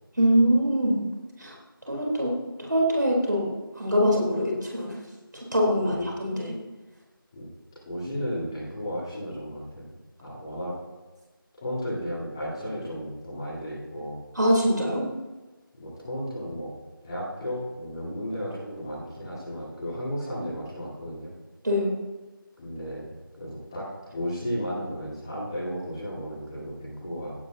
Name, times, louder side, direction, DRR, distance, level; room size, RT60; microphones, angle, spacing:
voice 1, 0.2-1.0 1.4-1.6 1.9-3.5 3.8-4.9 5.5-6.6 14.4-15.1 21.6-22.0, equal, 55° right, -1 dB, 3.7 m, -23 dB
voice 2, 7.8-9.9 10.2-10.7 11.6-14.1 15.8-16.7 17.0-21.3 22.6-23.1 23.4-23.9 24.1-27.3, equal, 10° left, -13 dB, 3.3 m, -34 dB
16.5 x 10.5 x 2.8 m, 1.2 s
figure-of-eight pair, 170°, 12 cm